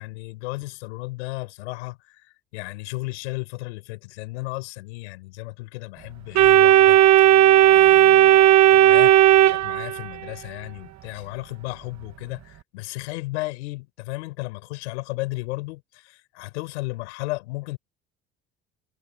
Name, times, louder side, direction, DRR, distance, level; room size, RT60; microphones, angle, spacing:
voice 1, 0.0-7.4 7.7-9.1 9.5-17.8, left 22 dB, 90° left, 6.2 m, -34 dB
Organ, 6.3-10.3, right 13 dB, 55° right, 1.3 m, -14 dB
hypercardioid pair, 70°, 33 cm